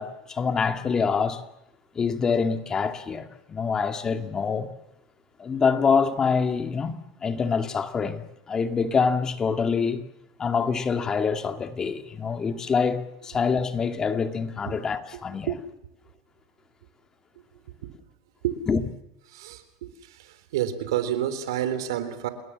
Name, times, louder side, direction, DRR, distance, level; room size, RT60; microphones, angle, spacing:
voice 1, 0.0-1.4 1.9-4.7 5.4-10.0 10.4-15.5 18.7-18.8, left 5 dB, 25° left, 2.3 m, -25 dB
voice 2, 19.3-19.9 20.5-22.3, right 11 dB, 85° right, 3.7 m, -28 dB
29.5 x 20.5 x 7.4 m
supercardioid pair, 115°, 2 cm